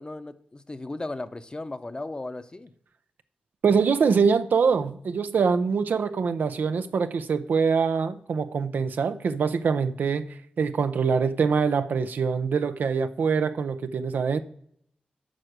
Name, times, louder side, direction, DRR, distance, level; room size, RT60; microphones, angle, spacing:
voice 1, 0.0-2.7, left 2 dB, 30° left, 0.7 m, -36 dB
voice 2, 3.6-10.3 10.6-14.4, right 5 dB, 80° right, 0.5 m, -24 dB
9.0 x 4.9 x 6.6 m
cardioid pair, 60°, 3 cm